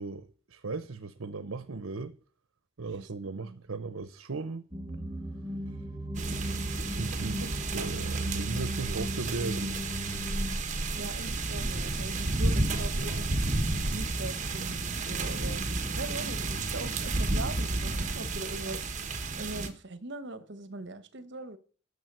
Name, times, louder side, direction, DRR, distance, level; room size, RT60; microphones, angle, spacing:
voice 1, 0.0-2.2 2.8-4.7 6.8-7.4 7.7-10.0, right 3 dB, 85° right, 0.8 m, -37 dB
sound 1, 4.7-10.5, right 1 dB, 15° right, 1.3 m, -36 dB
sound 2, 6.1-19.7, right 2 dB, 35° right, 1.3 m, -31 dB
voice 2, 10.9-13.3 13.9-18.9 19.4-21.6, right 2 dB, 55° right, 1.2 m, -41 dB
11.0 x 6.8 x 6.8 m
head